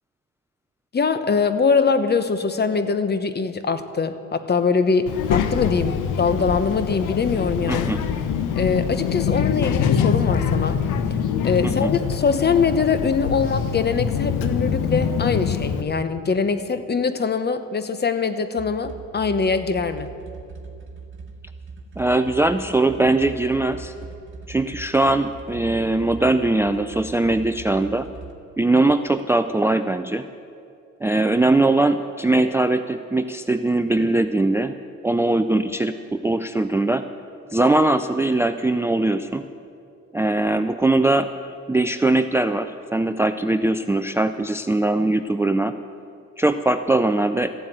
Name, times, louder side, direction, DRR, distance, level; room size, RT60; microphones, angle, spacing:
voice 1, 0.9-7.9 8.6-10.8 11.4-20.1, left 5 dB, 35° left, 11 dB, 1.0 m, -22 dB
Child speech kid speaking, 5.1-15.8, left 7 dB, 85° left, 0.9 m, -24 dB
voice 2, 7.7-8.0 11.6-11.9 22.0-23.9 24.5-28.1 28.6-30.3 31.0-34.7 35.0-37.0 37.5-39.4 40.1-45.7 46.4-47.5, right 2 dB, 10° right, 10 dB, 0.4 m, -21 dB
sound 1, 18.6-28.3, right 5 dB, 40° right, 1.8 m, -40 dB
14.5 x 7.7 x 9.1 m, 2.5 s
cardioid pair, 90°, 30 cm